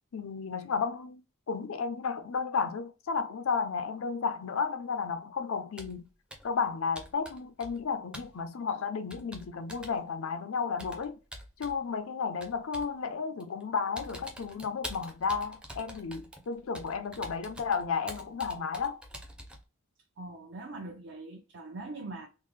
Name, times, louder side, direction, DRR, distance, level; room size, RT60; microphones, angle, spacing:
voice 1, 0.1-1.2 1.5-6.0 6.4-11.2 11.6-19.0, left 5 dB, 75° left, 0.5 m, -33 dB
Computer keyboard, 5.8-6.0 6.3-6.6 7.0-7.9 8.1-8.3 9.1-10.0 10.8-11.8 12.4-13.0 13.4-13.6 14.0-19.6, equal, 5° right, 0.5 m, -46 dB
voice 2, 20.2-22.3, right 2 dB, 60° right, 0.6 m, -42 dB
3.6 x 2.1 x 3.1 m
head